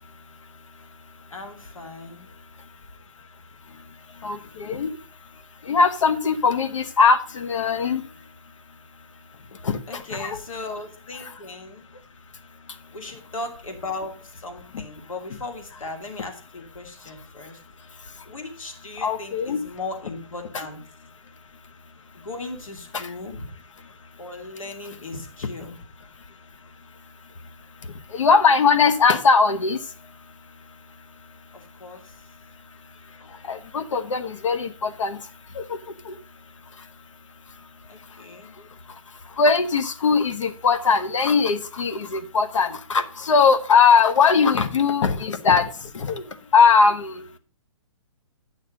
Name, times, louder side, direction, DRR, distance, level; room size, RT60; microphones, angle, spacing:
voice 1, 1.3-2.3 9.9-11.9 12.9-17.6 17.9-20.8 22.1-23.5 24.2-25.8 31.5-32.2 37.9-38.6, left 2 dB, 85° left, 5 dB, 2.7 m, -37 dB
voice 2, 3.7-5.0 5.6-8.3 9.5-10.4 11.2-11.3 12.7-12.8 14.7-14.8 18.0-18.3 19.0-19.6 22.9-23.1 27.8-30.1 33.1-36.2 36.7-36.9 37.5-37.7 38.1-47.3, left 5 dB, 70° left, 12 dB, 1.1 m, -21 dB
9.0 x 6.4 x 5.1 m, 0.39 s
hypercardioid pair, 165°, 17 cm